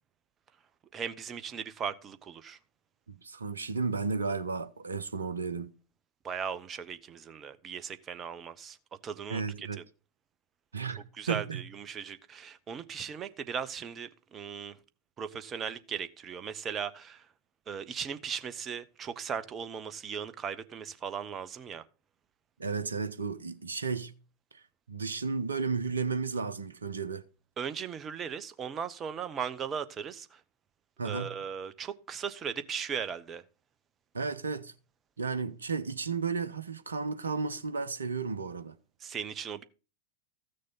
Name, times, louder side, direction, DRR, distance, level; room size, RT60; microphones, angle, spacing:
voice 1, 0.9-2.6 6.2-8.8 9.0-9.7 11.2-14.7 15.2-17.2 17.7-21.8 27.6-30.4 31.0-33.4 39.0-39.6, right 7 dB, 25° right, 0.9 m, -38 dB
voice 2, 3.2-5.7 9.3-9.8 10.7-11.6 22.6-24.1 24.5-24.6 24.9-27.2 31.0-31.3 34.1-34.7 35.2-38.7, right 5 dB, 75° right, 0.8 m, -33 dB
14.5 x 6.6 x 4.0 m
figure-of-eight pair, 90°, 0 cm